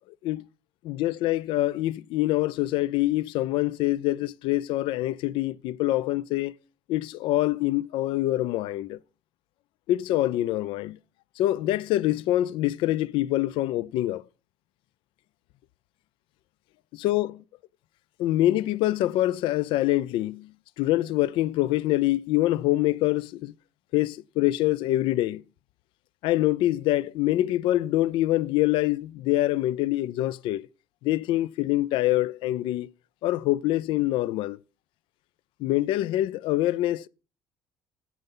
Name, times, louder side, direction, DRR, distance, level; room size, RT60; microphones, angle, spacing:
voice 1, 0.8-6.6 6.9-9.0 9.9-11.0 11.4-14.2 16.9-17.4 18.2-20.5 20.8-23.5 23.9-25.4 26.2-30.7 31.0-32.9 33.2-34.6 35.6-37.1, left 15 dB, 75° left, 0.4 m, -25 dB
9.3 x 8.0 x 5.4 m
cardioid pair, 130°, 9 cm